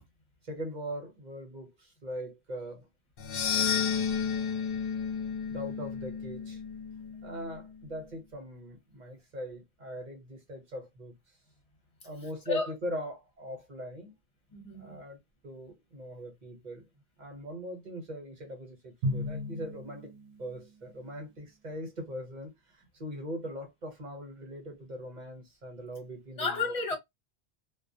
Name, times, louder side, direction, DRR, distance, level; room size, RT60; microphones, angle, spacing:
voice 1, 0.4-2.9 5.5-6.6 7.2-11.1 12.0-14.1 14.8-16.9 17.2-20.1 20.4-26.6, equal, 45° right, 1.0 m, -41 dB
sound 1, 3.2-7.5, left 7 dB, 65° left, 0.7 m, -32 dB
voice 2, 14.5-15.0 26.4-26.9, left 4 dB, 35° left, 1.0 m, -32 dB
Drum, 19.0-20.8, left 1 dB, 75° right, 0.8 m, -35 dB
2.2 x 2.1 x 2.6 m
omnidirectional pair, 1.1 m